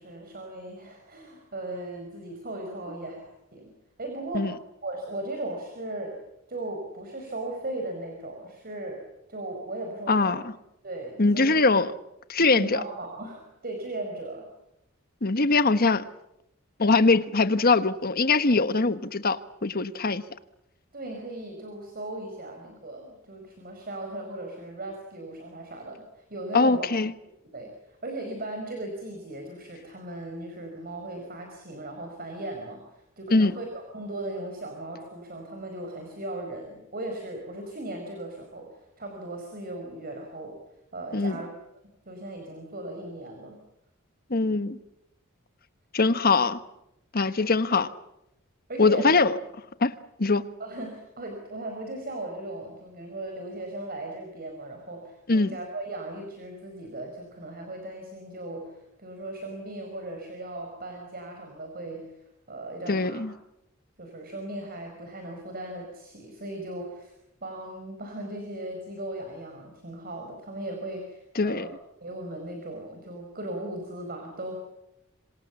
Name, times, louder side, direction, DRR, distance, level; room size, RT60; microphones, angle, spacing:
voice 1, 0.0-3.2 3.5-3.7 4.0-4.6 4.8-6.2 6.5-9.0 9.3-10.4 10.8-11.5 12.5-14.5 20.9-26.9 27.5-40.6 40.9-41.5 42.0-43.6 47.4-47.8 48.7-49.1 50.6-62.1 62.5-63.2 64.0-67.1 67.4-71.7 72.0-74.6, right 1 dB, 45° right, 3 dB, 5.0 m, -37 dB
voice 2, 10.1-10.5 11.2-11.9 12.3-12.8 15.2-16.0 16.8-20.2 26.5-27.1 33.3-33.5 41.1-41.4 44.3-44.8 45.9-46.6 47.1-47.9 48.8-49.4 49.8-49.9 50.2-50.4 55.3-55.5 62.9-63.3 71.4-71.7, left 3 dB, 45° left, 13 dB, 1.2 m, -22 dB
26.5 x 26.0 x 7.3 m, 0.85 s
head